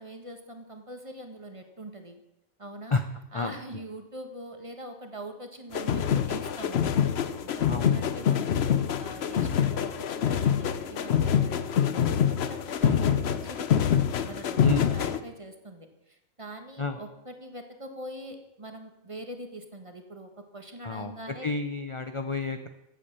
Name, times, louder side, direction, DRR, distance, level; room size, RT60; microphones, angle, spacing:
voice 1, 0.0-2.2 2.6-2.9 3.3-6.8 7.1-13.7 14.2-21.5, right 1 dB, 25° right, 5 dB, 1.6 m, -43 dB
sound 1, 5.7-15.2, left 8 dB, 55° left, 0.9 m, -25 dB
voice 2, 7.7-8.1 12.8-13.1 14.6-14.9 16.8-17.0 20.8-21.1 21.4-22.7, left 4 dB, 35° left, 7 dB, 0.5 m, -30 dB
15.5 x 8.6 x 6.9 m, 0.88 s
omnidirectional pair, 1.5 m